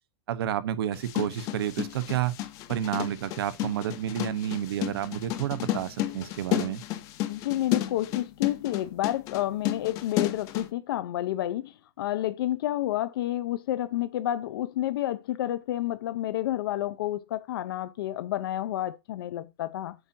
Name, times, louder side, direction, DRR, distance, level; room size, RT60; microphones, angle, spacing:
voice 1, 0.3-2.4 2.7-6.8, right 10 dB, 80° right, 0.9 m, -30 dB
sound 1, 0.9-10.7, left 13 dB, 25° left, 0.6 m, -32 dB
voice 2, 7.3-20.0, left 13 dB, 70° left, 0.6 m, -30 dB
7.9 x 2.7 x 6.0 m
supercardioid pair, 175°, 12 cm